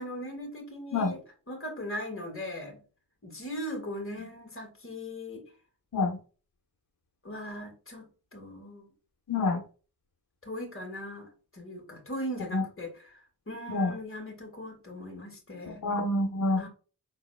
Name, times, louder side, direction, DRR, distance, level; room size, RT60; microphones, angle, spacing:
voice 1, 0.0-2.8 3.2-5.4 7.2-8.9 10.4-15.9 16.6-16.7, equal, 30° left, 3 dB, 2.3 m, -39 dB
voice 2, 9.3-9.6 12.5-12.6 13.7-13.9 15.7-16.6, left 2 dB, 55° left, -3 dB, 1.3 m, -27 dB
5.6 x 3.8 x 2.5 m, 0.36 s
cardioid pair, 55°, 40 cm